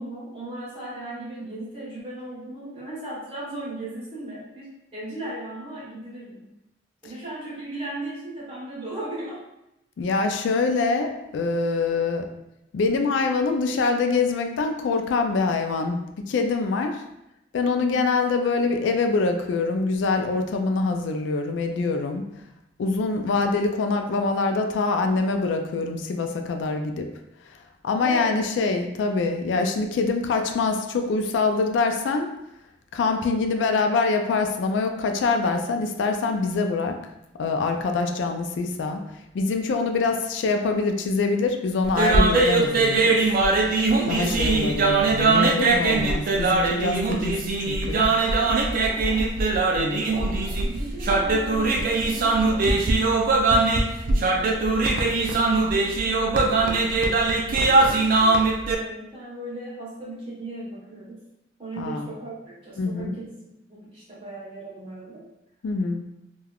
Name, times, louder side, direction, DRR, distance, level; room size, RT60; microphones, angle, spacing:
voice 1, 0.0-6.4 7.0-9.4 10.2-10.3 17.7-18.0 28.0-28.4 44.0-44.4 48.9-49.3 50.0-52.7 53.1-53.6 54.0-56.9 57.5-61.2 61.6-63.3 63.7-65.2, right 1 dB, 30° right, -7 dB, 1.1 m, -37 dB
voice 2, 10.0-12.2 12.7-17.0 17.5-22.3 22.8-27.1 27.8-32.3 32.9-37.0 37.4-39.0 39.3-43.2 43.7-43.8 44.1-48.1 48.4-48.5 49.8-50.0 61.8-62.1 62.8-63.2 65.6-66.0, left 3 dB, 80° left, 5 dB, 0.3 m, -24 dB
sound 1, 41.9-58.8, right 3 dB, 50° right, 0.3 m, -21 dB
3.3 x 2.3 x 2.3 m, 0.88 s
head